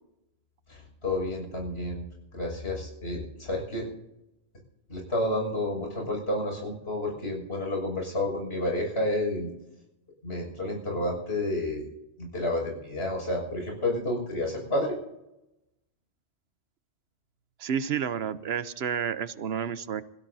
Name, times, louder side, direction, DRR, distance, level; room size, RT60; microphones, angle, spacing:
voice 1, 0.7-2.0 2.3-3.9 4.9-9.5 10.2-11.8 12.2-15.0, left 1 dB, 75° left, 0 dB, 6.7 m, -30 dB
voice 2, 17.6-20.0, right 7 dB, 70° right, 14 dB, 1.0 m, -30 dB
26.5 x 16.5 x 2.7 m, 0.92 s
omnidirectional pair, 1.1 m